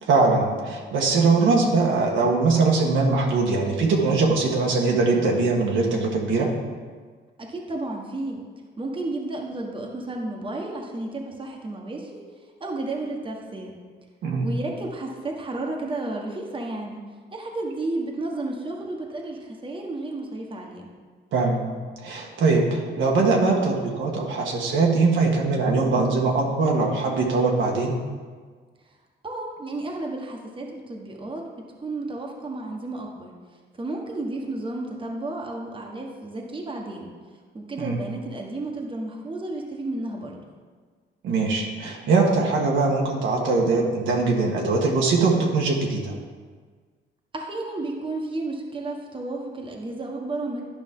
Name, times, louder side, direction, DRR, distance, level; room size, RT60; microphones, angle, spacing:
voice 1, 0.1-6.5 14.2-14.5 21.3-21.7 22.0-27.9 37.8-38.0 41.2-46.1, right 3 dB, 75° right, -1 dB, 1.5 m, -21 dB
voice 2, 7.4-8.4 8.8-12.2 12.6-13.7 14.4-17.0 17.3-20.9 29.2-31.4 31.8-33.3 33.8-37.1 37.5-40.4 47.3-50.6, right 2 dB, 25° right, 0 dB, 1.3 m, -32 dB
11.5 x 5.2 x 3.8 m, 1.5 s
cardioid pair, 90°, 20 cm